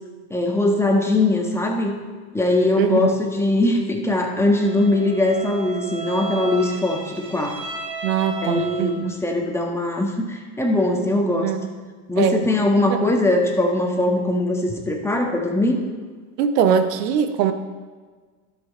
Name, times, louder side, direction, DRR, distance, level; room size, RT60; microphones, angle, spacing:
voice 1, 0.3-1.9 2.3-7.6 8.4-11.5 12.1-15.8, left 1 dB, 5° left, 0 dB, 1.6 m, -21 dB
voice 2, 2.8-3.1 8.0-9.1 11.4-11.7 12.2-12.4 13.0-13.1 16.4-17.5, right 8 dB, 80° right, 10 dB, 1.0 m, -21 dB
Bowed string instrument, 4.5-9.2, right 5 dB, 35° right, 2.7 m, -34 dB
12.5 x 6.5 x 4.3 m, 1.5 s
hypercardioid pair, 100°, 47 cm